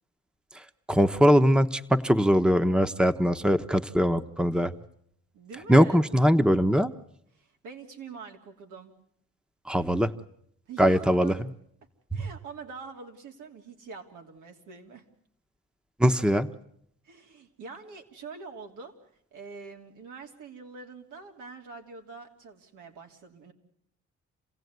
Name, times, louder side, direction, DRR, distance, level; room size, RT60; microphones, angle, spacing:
voice 1, 0.5-4.7 5.7-6.9 9.7-10.1 10.8-11.4 12.1-12.2 16.0-16.5, equal, 5° right, 11 dB, 1.0 m, -22 dB
voice 2, 5.3-6.4 7.3-8.9 10.7-11.4 12.1-15.1 17.0-18.9 19.3-23.5, right 5 dB, 85° right, 4 dB, 3.2 m, -44 dB
28.0 x 17.0 x 9.5 m, 0.72 s
cardioid pair, 90°, 30 cm